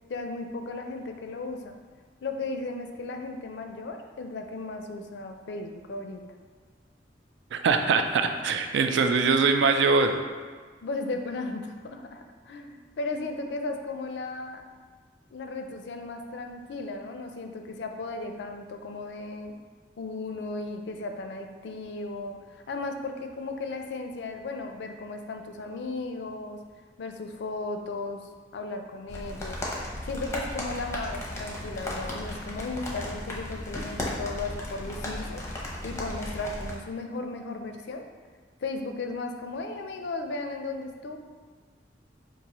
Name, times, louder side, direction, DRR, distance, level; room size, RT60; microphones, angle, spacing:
voice 1, 0.1-1.7 2.2-6.2 10.8-14.6 15.3-19.5 20.0-26.6 27.0-29.6 30.0-35.4 35.8-38.0 38.6-41.2, left 3 dB, 70° left, 5 dB, 0.4 m, -35 dB
voice 2, 7.5-10.1, right 4 dB, 75° right, 7 dB, 0.3 m, -22 dB
sound 1, 29.1-36.8, left 1 dB, 15° left, 0.6 m, -35 dB
5.3 x 2.6 x 2.9 m, 1.5 s
head